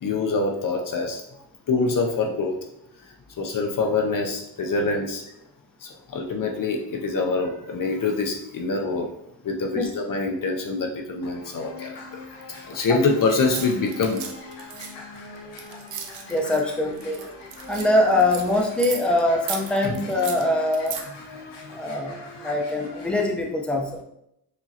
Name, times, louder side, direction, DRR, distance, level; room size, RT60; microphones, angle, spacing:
voice 1, 0.0-1.2 1.7-2.6 3.4-5.2 5.8-9.1 9.4-12.0 12.6-14.2 19.8-20.0, left 3 dB, 50° left, 2 dB, 0.7 m, -25 dB
sound 1, 11.2-23.2, left 3 dB, 80° left, 1.1 m, -42 dB
sound 2, 13.2-16.6 17.0-19.2 19.5-21.0, right 7 dB, 85° right, 0.6 m, -36 dB
voice 2, 16.3-17.2 17.7-21.0 21.7-24.0, left 1 dB, ahead, 0 dB, 0.8 m, -23 dB
4.8 x 2.9 x 2.8 m, 0.78 s
cardioid pair, 60°, 42 cm